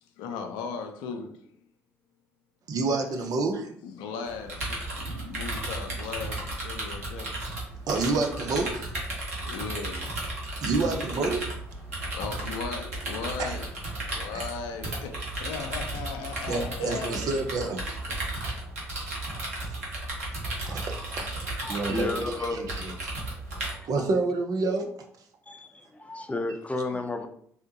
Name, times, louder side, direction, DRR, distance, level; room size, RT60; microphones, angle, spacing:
voice 1, 0.2-1.3 3.8-7.3 9.4-10.4 11.9-13.7 14.1-17.3 18.1-18.2, left 5 dB, 70° left, 0.5 m, -37 dB
voice 2, 2.7-3.7 7.3-7.5 7.9-8.9 9.2-9.3 10.6-11.5 13.4-13.5 16.5-17.8 20.6-22.9 23.8-25.1, right 3 dB, 50° right, 0.6 m, -29 dB
sound 1, 4.3-23.7, right 2 dB, 85° right, 0.8 m, -34 dB
voice 3, 21.6-22.6 23.7-23.8 25.5-27.3, left 2 dB, 15° left, 0.6 m, -32 dB
3.4 x 2.8 x 2.7 m
hypercardioid pair, 50°, 8 cm